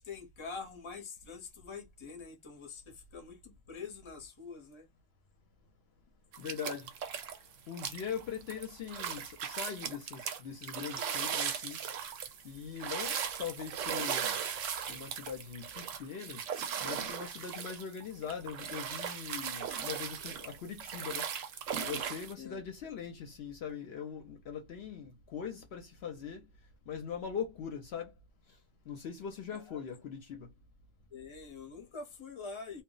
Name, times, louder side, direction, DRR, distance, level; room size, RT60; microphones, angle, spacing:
voice 1, 0.0-4.9 22.4-22.6 29.5-29.8 31.1-32.8, left 5 dB, 30° left, 0.6 m, -45 dB
sound 1, 6.3-7.4 7.7-22.3, right 8 dB, 80° right, 1.0 m, -38 dB
voice 2, 6.4-6.9 7.7-14.4 14.9-16.4 16.8-21.3 21.8-26.5 26.9-28.1 28.5-28.6 28.9-30.5, left 7 dB, 65° left, 0.8 m, -41 dB
2.2 x 2.0 x 3.7 m
omnidirectional pair, 1.3 m